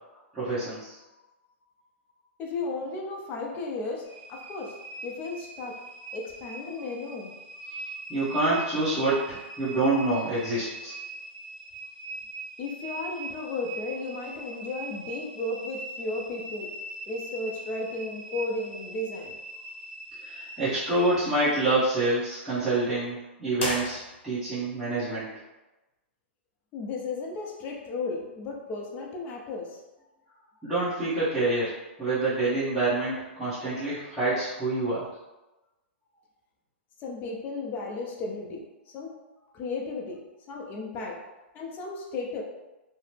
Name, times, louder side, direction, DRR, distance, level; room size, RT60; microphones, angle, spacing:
voice 1, 0.3-1.0 7.7-10.9 20.2-25.3 30.6-35.0, right 2 dB, 5° right, -16 dB, 1.1 m, -27 dB
voice 2, 2.4-4.8 5.0-5.8 6.1-7.3 12.6-16.7 17.1-19.4 26.7-29.8 37.0-39.2 39.5-41.2 41.5-42.4, left 3 dB, 30° left, 0 dB, 0.6 m, -34 dB
sound 1, 4.0-21.7, right 2 dB, 55° right, 1.0 m, -41 dB
sound 2, 23.5-24.6, left 1 dB, 85° left, 0.9 m, -34 dB
2.8 x 2.0 x 3.3 m, 1.0 s
hypercardioid pair, 135°, 6 cm